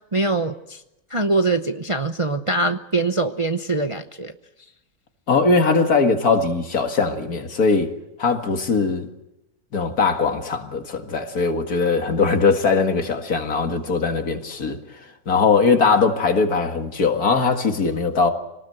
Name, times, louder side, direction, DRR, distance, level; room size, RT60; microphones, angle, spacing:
voice 1, 0.1-0.8 1.1-4.3, right 2 dB, 25° right, 0.7 m, -23 dB
voice 2, 5.3-7.9 8.2-9.1 9.7-14.8 15.3-18.3, left 4 dB, 70° left, 2.4 m, -20 dB
26.5 x 19.0 x 7.9 m
omnidirectional pair, 1.6 m